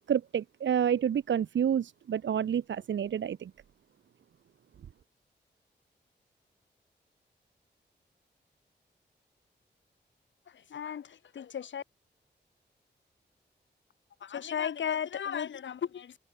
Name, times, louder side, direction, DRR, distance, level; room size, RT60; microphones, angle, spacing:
voice 1, 0.1-3.5, right 8 dB, 80° right, 1.3 m, -29 dB
voice 2, 10.5-11.8 14.2-16.2, left 8 dB, 85° left, 3.5 m, -35 dB
cardioid pair, 45°, 19 cm